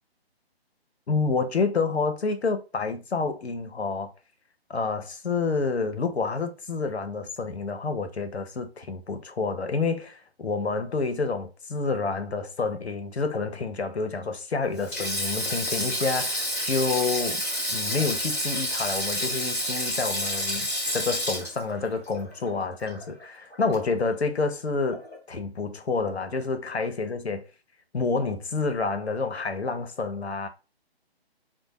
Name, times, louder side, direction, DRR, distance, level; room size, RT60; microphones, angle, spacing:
voice 1, 1.1-4.1 4.7-17.4 17.7-20.7 20.9-25.0 25.3-27.4 27.9-30.5, left 4 dB, 90° left, 0.6 m, -28 dB
Sink (filling or washing), 14.8-23.2 23.5-23.7 24.9-25.2, equal, 5° left, 1.1 m, -29 dB
2.6 x 2.0 x 2.9 m
figure-of-eight pair, 140°, 31 cm